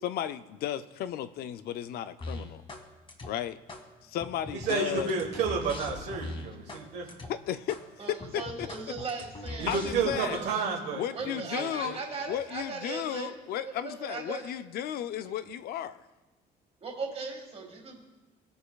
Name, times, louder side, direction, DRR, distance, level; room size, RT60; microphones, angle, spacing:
voice 1, 0.0-2.6 3.2-3.6 4.0-5.2 7.3-7.8 8.1-8.7 9.7-10.4 10.9-12.0 12.3-16.0, left 10 dB, 65° left, 12 dB, 0.4 m, -34 dB
sound 1, 2.2-2.8 3.1-3.8 4.2-6.8 7.1-7.3 7.7-7.8 8.2-10.2, left 2 dB, 30° left, 1.4 m, -40 dB
voice 2, 4.5-7.2 9.6-12.0, right 5 dB, 90° right, 0 dB, 1.3 m, -31 dB
voice 3, 8.0-9.9 10.2-10.5 11.1-13.4 13.6-14.5 16.8-18.0, right 4 dB, 35° right, 1 dB, 1.9 m, -38 dB
16.5 x 6.6 x 2.3 m, 1.2 s
cardioid pair, 110°, 17 cm